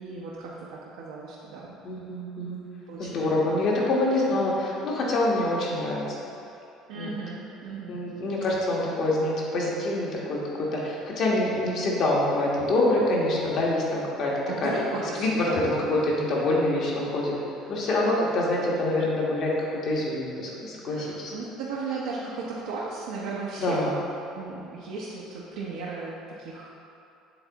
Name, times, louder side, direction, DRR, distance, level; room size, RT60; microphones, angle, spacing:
voice 1, 0.0-1.8 2.9-3.2 3.5-3.6 6.9-8.0 9.0-9.2 14.5-16.1 17.6-17.8 20.9-23.9 24.3-26.7, right 3 dB, 85° right, -6 dB, 0.8 m, -36 dB
voice 2, 1.8-2.6 3.0-6.0 7.0-7.1 7.9-14.3 14.6-14.7 15.2-17.3 17.7-19.5 19.8-21.3 23.6-23.9, left 2 dB, 55° left, -4 dB, 1.4 m, -26 dB
7.8 x 3.5 x 4.0 m, 2.7 s
supercardioid pair, 95°, 0 cm